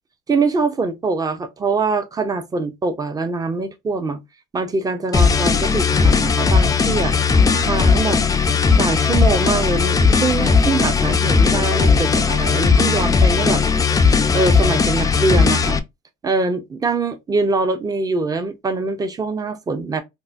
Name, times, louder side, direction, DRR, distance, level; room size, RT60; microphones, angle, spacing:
voice 1, 0.3-4.2 4.5-7.1 7.6-8.2 8.8-13.6 14.3-15.8 16.2-20.0, right 3 dB, 20° right, 0.6 m, -23 dB
sound 1, 5.1-15.8, left 5 dB, 20° left, 0.4 m, -17 dB
3.7 x 2.1 x 2.5 m
cardioid pair, 110°, 17 cm